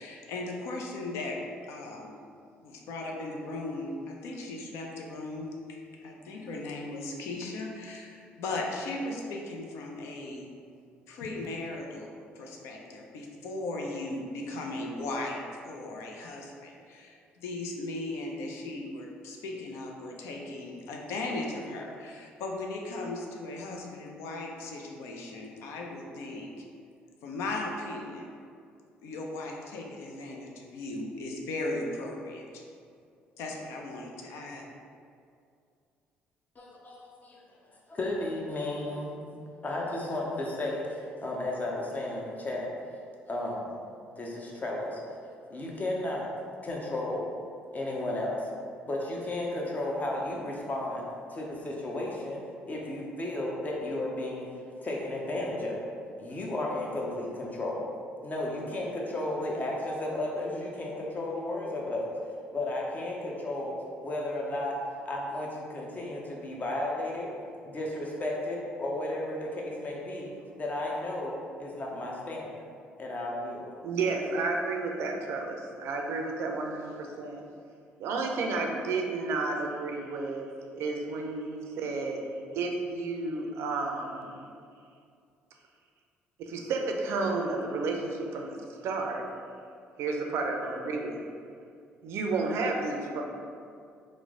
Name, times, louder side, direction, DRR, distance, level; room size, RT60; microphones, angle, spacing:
voice 1, 0.0-2.2 2.6-10.5 11.1-26.5 27.2-28.3 29.0-32.6 33.4-34.7, left 2 dB, 75° left, 0 dB, 0.4 m, -37 dB
voice 2, 36.6-37.4 37.9-42.7 43.3-43.8 44.2-45.2 45.5-46.3 46.6-47.3 47.7-48.5 48.9-51.1 51.3-52.4 52.7-54.5 54.8-55.9 56.2-57.8 58.2-62.2 62.5-63.8 64.0-64.8 65.0-67.3 67.6-70.3 70.6-71.3 71.6-72.5 73.0-73.7, left 1 dB, 35° left, -2 dB, 0.7 m, -33 dB
voice 3, 73.8-77.4 78.0-80.5 80.7-82.2 82.5-84.4 86.4-88.6 88.8-89.2 90.0-91.2 92.0-93.2, right 3 dB, 70° right, 2 dB, 0.4 m, -31 dB
3.1 x 2.0 x 3.6 m, 2.3 s
hypercardioid pair, 60°, 5 cm